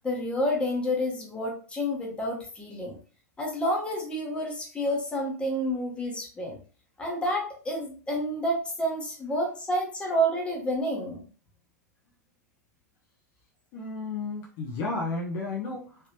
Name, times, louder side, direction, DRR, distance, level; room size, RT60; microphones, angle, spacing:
voice 1, 0.0-2.9 3.4-6.6 7.0-11.2, equal, 10° left, -1 dB, 1.1 m, -29 dB
voice 2, 13.7-16.1, left 3 dB, 40° left, -2 dB, 0.8 m, -33 dB
3.3 x 2.9 x 2.8 m, 0.39 s
figure-of-eight pair, 95°, 9 cm